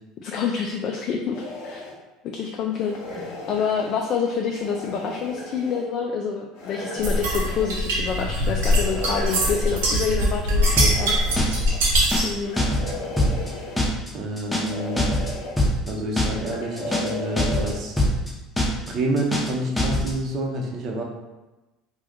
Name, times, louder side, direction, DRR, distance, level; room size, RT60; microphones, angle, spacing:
voice 1, 0.2-1.8 2.2-11.1 12.2-12.6, left 6 dB, 50° left, 1 dB, 0.3 m, -27 dB
sound 1, 1.3-2.0 2.7-4.0 4.5-5.8 6.5-7.7 8.4-9.8 10.5-11.8 12.4-13.9 14.4-15.5 16.2-17.8, left 2 dB, 75° left, 0.9 m, -36 dB
sound 2, 7.0-12.4, equal, 85° right, 0.8 m, -22 dB
sound 3, 10.8-11.1 11.4-11.7 12.0-12.3 12.6-12.9 13.2-13.5 13.8-14.1 14.4-14.7 15.0-15.3 15.6-15.9 16.2-16.5 16.8-17.1 17.4-17.7 18.0-18.3 18.6-18.9 19.2-19.5 19.8-20.1, left 1 dB, 10° left, 0.7 m, -22 dB
voice 2, 14.1-15.1 15.9-18.0 18.9-21.0, right 1 dB, 50° right, 0 dB, 0.8 m, -28 dB
2.6 x 2.3 x 3.5 m, 1.1 s
hypercardioid pair, 80°, 0 cm